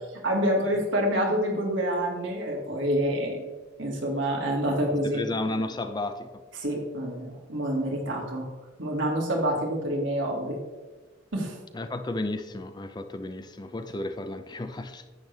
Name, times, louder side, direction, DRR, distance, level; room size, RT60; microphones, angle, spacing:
voice 1, 0.2-3.4 3.8-5.2 6.6-8.5 8.8-10.6 11.3-11.6, equal, 70° right, -1 dB, 2.3 m, -27 dB
voice 2, 5.1-6.4 11.7-15.0, left 2 dB, 20° left, 9 dB, 0.5 m, -33 dB
10.5 x 8.1 x 3.4 m, 1.3 s
head